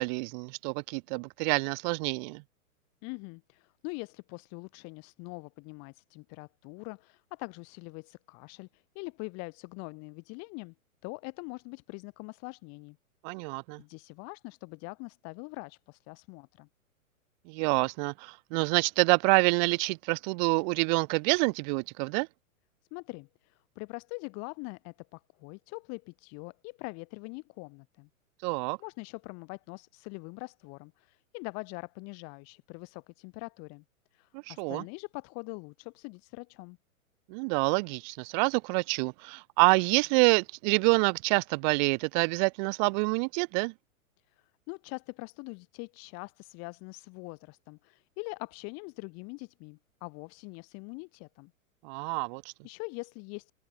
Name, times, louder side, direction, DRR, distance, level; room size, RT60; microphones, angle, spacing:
voice 1, 0.0-2.4 13.2-13.8 17.5-22.3 28.4-28.8 34.5-34.8 37.3-43.7 51.8-52.5, right 33 dB, 35° right, 0.8 m, -27 dB
voice 2, 3.0-10.7 11.0-13.0 13.8-16.7 22.9-28.1 28.8-33.8 34.1-36.8 44.3-51.5 52.6-53.5, left 32 dB, 35° left, 2.3 m, -43 dB
hypercardioid pair, 125°, 42 cm